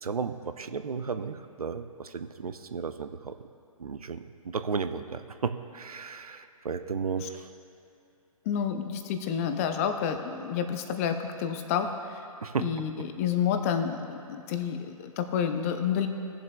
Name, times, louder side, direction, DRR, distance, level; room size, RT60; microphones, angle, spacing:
voice 1, 0.0-3.3 3.8-7.5 12.4-12.7, right 5 dB, 80° right, 10 dB, 0.5 m, -34 dB
voice 2, 8.5-12.2 12.6-14.2 14.5-16.1, left 8 dB, 25° left, 7 dB, 0.5 m, -29 dB
18.5 x 7.3 x 2.3 m, 2.8 s
figure-of-eight pair, 130°, 19 cm